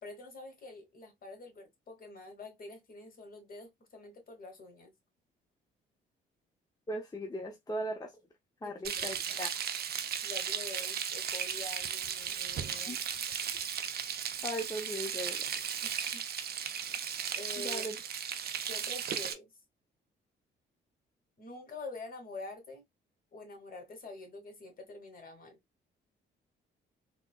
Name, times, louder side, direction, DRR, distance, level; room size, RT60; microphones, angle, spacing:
voice 1, 0.0-4.9 8.6-9.4 10.2-13.0 15.8-16.2 17.3-17.9 18.6-19.6 21.4-22.8 23.3-25.6, left 3 dB, 45° left, 1.3 m, -47 dB
voice 2, 6.9-8.1 8.6-9.5 12.9-13.0 14.4-15.5 17.6-18.0, equal, 20° left, 0.6 m, -38 dB
Frying (food), 8.8-19.3, right 8 dB, 55° right, 0.5 m, -36 dB
3.7 x 2.1 x 2.3 m
cardioid pair, 90°, 20 cm